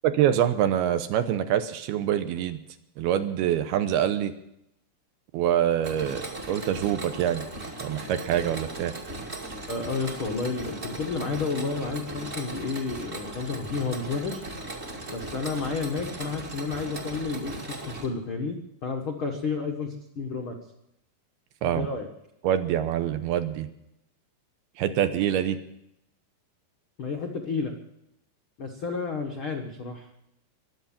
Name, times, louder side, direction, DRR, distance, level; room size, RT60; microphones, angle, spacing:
voice 1, 0.0-2.6 3.0-4.3 5.3-7.4 7.8-8.9 21.6-21.9 22.4-23.7 24.8-25.6, right 10 dB, 75° right, 10 dB, 2.6 m, -25 dB
Mechanisms, 5.8-18.1, right 2 dB, 25° right, 1.6 m, -38 dB
voice 2, 9.7-14.4 15.1-18.6 18.8-20.5 21.6-22.1 27.0-27.7 28.6-30.1, left 4 dB, 85° left, 2 dB, 1.1 m, -31 dB
22.0 x 8.2 x 7.3 m, 0.80 s
omnidirectional pair, 4.9 m